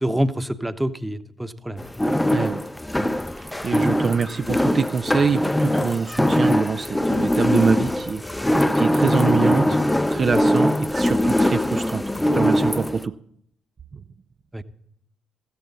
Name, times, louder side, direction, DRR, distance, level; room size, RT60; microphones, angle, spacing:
voice 1, 0.0-1.8 14.5-14.6, equal, 10° right, 11 dB, 1.1 m, -26 dB
sound 1, 1.8-13.0, left 1 dB, 10° left, 0.7 m, -21 dB
voice 2, 2.3-2.6 3.0-9.8 10.1-12.0 12.3-13.2, right 5 dB, 40° right, 9 dB, 0.6 m, -25 dB
15.5 x 14.5 x 4.1 m, 0.67 s
figure-of-eight pair, 45°, 0 cm